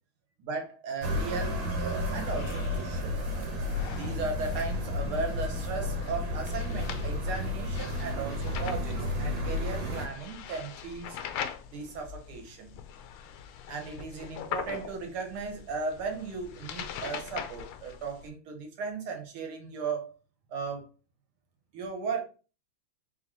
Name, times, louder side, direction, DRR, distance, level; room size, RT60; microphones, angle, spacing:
voice 1, 0.4-3.2 4.0-11.2 11.7-12.7 13.7-20.1 20.5-20.9 21.7-22.2, right 4 dB, 85° right, 2.1 m, -36 dB
sound 1, 1.0-10.1, left 1 dB, 70° right, 1.8 m, -32 dB
sound 2, 1.3-18.3, left 8 dB, 80° left, 1.4 m, -43 dB
4.4 x 3.7 x 3.0 m
omnidirectional pair, 2.3 m